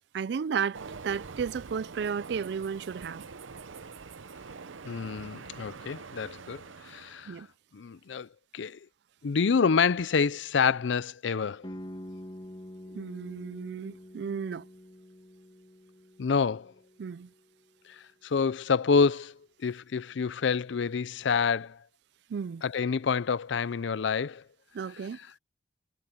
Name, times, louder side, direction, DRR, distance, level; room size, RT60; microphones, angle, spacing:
voice 1, 0.1-3.2 7.3-7.5 12.9-14.7 17.0-17.3 22.3-22.6 24.7-25.2, right 6 dB, 60° right, 0.3 m, -33 dB
Train, 0.7-7.4, right 5 dB, 90° right, 0.7 m, -45 dB
voice 2, 4.8-7.4 7.7-8.3 8.5-8.8 9.2-11.7 16.2-16.7 18.2-19.3 19.6-21.8 22.6-24.4, left 5 dB, 75° left, 0.5 m, -27 dB
sound 1, 11.6-17.4, left 1 dB, 25° left, 2.3 m, -46 dB
head